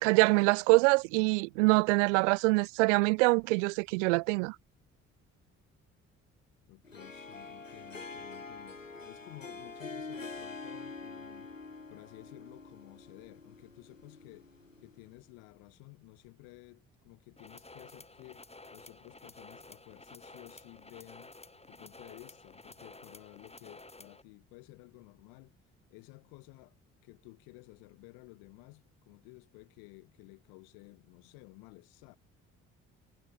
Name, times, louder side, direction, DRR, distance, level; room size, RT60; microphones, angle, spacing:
voice 1, 0.0-4.5, right 28 dB, 70° right, 0.8 m, -25 dB
voice 2, 6.7-11.5 11.9-14.5 14.8-18.5 18.7-21.3 21.7-25.6 25.9-26.8 27.0-32.2, left 31 dB, 70° left, 8.0 m, -54 dB
Harp, 6.8-15.1, left 3 dB, 90° left, 2.1 m, -46 dB
sound 1, 17.4-24.2, left 2 dB, 15° left, 5.2 m, -52 dB
figure-of-eight pair, 45°, 38 cm